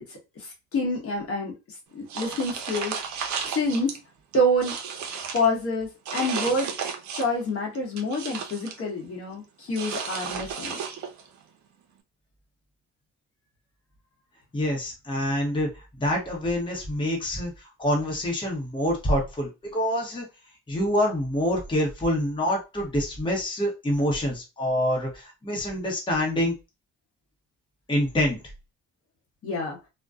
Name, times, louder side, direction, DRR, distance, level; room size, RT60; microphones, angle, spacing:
voice 1, 0.0-1.5 1.9-3.0 3.5-4.0 4.3-4.8 5.3-6.7 7.1-10.8 29.4-29.8, left 1 dB, 50° left, -1 dB, 1.0 m, -27 dB
sound 1, 2.1-4.0 4.3-5.5 6.1-7.4 7.7-8.8 9.7-11.3, right 6 dB, 70° right, 0.6 m, -33 dB
voice 2, 14.5-17.5 17.8-20.2 20.7-26.5 27.9-28.4, left 1 dB, 15° left, -1 dB, 0.9 m, -26 dB
2.5 x 2.2 x 2.3 m, 0.26 s
cardioid pair, 90°, 30 cm